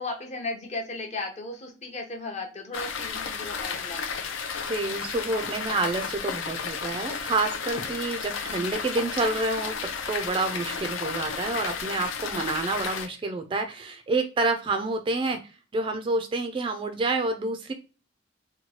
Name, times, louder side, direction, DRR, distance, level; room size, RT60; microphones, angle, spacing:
voice 1, 0.0-4.0, left 2 dB, 35° left, 3 dB, 0.6 m, -35 dB
sound 1, 2.7-13.1, left 6 dB, 85° left, 0.5 m, -33 dB
voice 2, 4.6-15.4 15.7-17.7, right 3 dB, 25° right, 6 dB, 0.3 m, -28 dB
2.9 x 2.2 x 2.7 m, 0.34 s
head